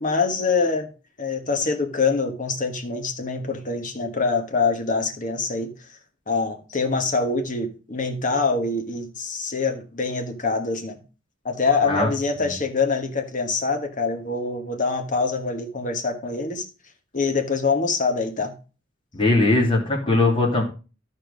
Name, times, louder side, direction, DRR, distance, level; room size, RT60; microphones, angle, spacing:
voice 1, 0.0-0.9 1.2-5.7 6.3-11.0 11.4-16.7 17.1-18.6, left 4 dB, 40° left, 1.4 m, -24 dB
voice 2, 19.1-20.6, left 2 dB, 25° left, 2.6 m, -20 dB
12.5 x 4.5 x 5.1 m
head